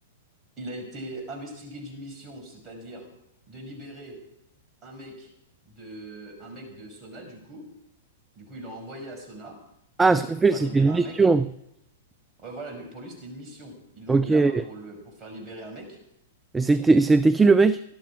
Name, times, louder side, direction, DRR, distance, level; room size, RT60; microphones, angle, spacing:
voice 1, 0.6-3.1 3.5-4.2 4.8-5.3 5.7-7.6 8.4-9.5 10.1-11.2 12.4-16.0, right 1 dB, 30° right, 3 dB, 5.7 m, -41 dB
voice 2, 10.0-11.5 14.1-14.6 16.5-17.8, right 3 dB, 10° right, 15 dB, 0.5 m, -19 dB
18.0 x 12.5 x 4.8 m, 0.84 s
hypercardioid pair, 110°, 0 cm